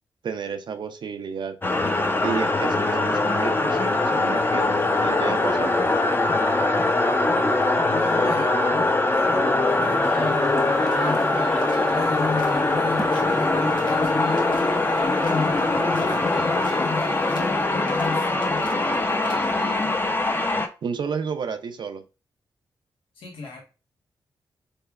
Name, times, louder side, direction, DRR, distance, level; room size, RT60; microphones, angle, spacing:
voice 1, 0.2-1.6 2.2-5.8 20.8-22.0, right 6 dB, 60° right, 0.4 m, -31 dB
sound 1, 1.6-20.7, left 2 dB, 25° left, 0.6 m, -22 dB
voice 2, 7.9-11.4 11.9-14.7 15.2-18.8 23.1-23.6, left 4 dB, 80° left, 1.1 m, -35 dB
sound 2, 10.0-17.5, equal, 10° left, 0.9 m, -40 dB
sound 3, 10.7-19.8, left 3 dB, 60° left, 0.9 m, -38 dB
3.3 x 3.1 x 2.3 m
cardioid pair, 60°, 9 cm